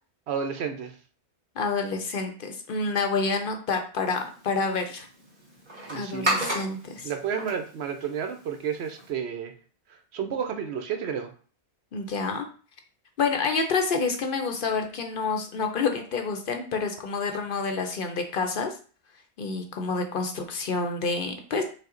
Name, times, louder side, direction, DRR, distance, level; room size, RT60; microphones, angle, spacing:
voice 1, 0.3-0.9 5.9-6.3 7.0-9.5 10.1-11.3, right 7 dB, 75° right, 6 dB, 0.9 m, -31 dB
voice 2, 1.6-5.1 5.9-7.1 11.9-12.5 13.2-18.7 19.4-21.6, left 4 dB, 60° left, 5 dB, 0.7 m, -28 dB
sound 1, 4.0-9.1, right 1 dB, 40° right, 1.6 m, -34 dB
5.5 x 2.1 x 3.7 m, 0.40 s
omnidirectional pair, 1.1 m